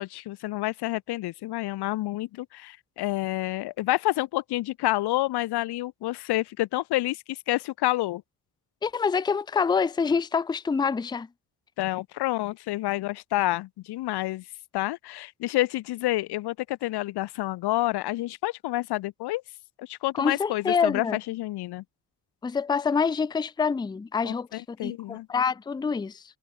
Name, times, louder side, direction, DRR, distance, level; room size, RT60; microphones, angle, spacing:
voice 1, 0.0-8.2 11.8-14.4 14.7-19.4 19.8-21.8 24.2-25.3, left 17 dB, 80° left, 0.6 m, -29 dB
voice 2, 8.8-11.3 20.2-21.2 22.4-26.2, left 5 dB, 10° left, 0.4 m, -26 dB
cardioid pair, 155°, 39 cm